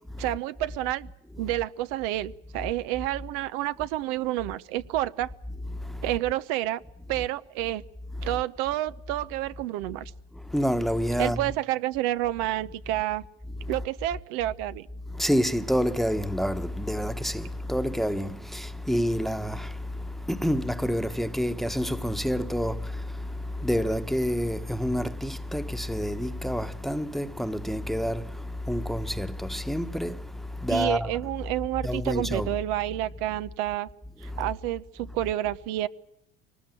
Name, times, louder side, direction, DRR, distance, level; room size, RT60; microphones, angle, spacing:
voice 1, 0.2-1.1 1.4-5.3 6.0-6.8 7.1-7.8 8.2-10.1 11.2-13.2 13.7-14.9 30.7-33.9 34.2-35.9, right 14 dB, 75° right, 0.9 m, -29 dB
voice 2, 10.3-11.4 13.6-13.7 15.1-31.2 31.8-32.5 34.3-34.4, equal, ahead, 1.2 m, -28 dB
23.0 x 19.5 x 9.1 m
supercardioid pair, 90°, 29 cm